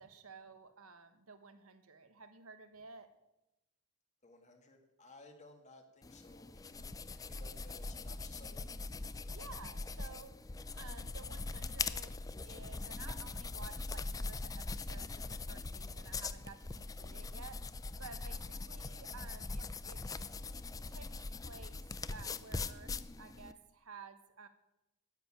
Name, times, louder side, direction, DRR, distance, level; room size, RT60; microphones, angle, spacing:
voice 1, 0.0-3.1 9.3-10.4 10.8-17.6 18.0-20.0 20.9-21.2 21.4-21.8 22.1-24.5, right 4 dB, 70° right, 9 dB, 1.3 m, -54 dB
voice 2, 4.2-8.7 18.9-19.1, left 2 dB, 30° left, 4 dB, 2.0 m, -59 dB
sound 1, 6.0-23.5, left 3 dB, 15° left, 0.4 m, -42 dB
10.5 x 9.5 x 8.9 m, 0.93 s
head